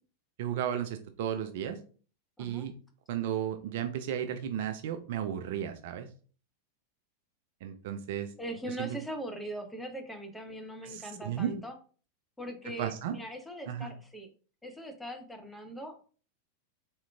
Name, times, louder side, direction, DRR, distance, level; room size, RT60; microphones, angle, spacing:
voice 1, 0.4-1.8 2.4-2.7 3.1-6.1 7.6-8.3 8.8-8.9 10.8-11.5 12.8-13.1 13.7-13.9, right 9 dB, 50° right, 8 dB, 0.3 m, -34 dB
voice 2, 2.4-2.7 8.4-11.8 12.4-14.3 14.6-16.1, right 1 dB, 5° left, 4 dB, 0.6 m, -41 dB
3.5 x 2.8 x 2.2 m, 0.40 s
figure-of-eight pair, 90°, 0 cm